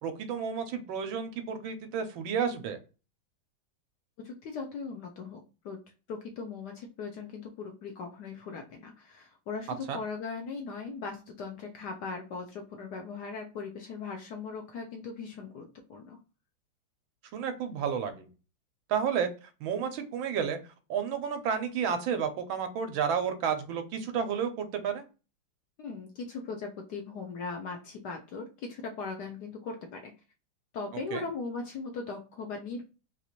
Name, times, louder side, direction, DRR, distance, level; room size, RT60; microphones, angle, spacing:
voice 1, 0.0-2.8 9.9-10.0 17.3-18.3 18.9-20.6 20.9-25.0 31.1-31.2, right 7 dB, 80° right, 7 dB, 1.4 m, -31 dB
voice 2, 4.2-5.8 6.1-16.2 25.8-30.1 30.7-32.9, left 4 dB, 70° left, 3 dB, 1.0 m, -39 dB
4.0 x 2.5 x 2.9 m, 0.32 s
omnidirectional pair, 2.3 m